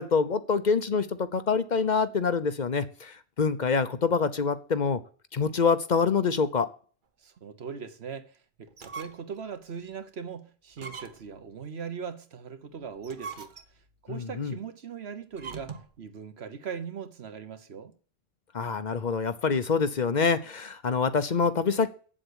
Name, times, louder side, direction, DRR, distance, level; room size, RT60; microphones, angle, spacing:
voice 1, 0.0-5.0 5.3-6.7 14.1-14.5 18.5-21.9, left 5 dB, 50° left, 0.8 m, -26 dB
voice 2, 7.2-13.5 14.0-17.9, right 6 dB, 80° right, 1.4 m, -40 dB
sound 1, 8.7-9.4 9.9-10.0 10.7-11.4 12.9-13.9 15.3-16.0, right 5 dB, 50° right, 1.1 m, -42 dB
8.1 x 7.6 x 8.0 m
omnidirectional pair, 1.1 m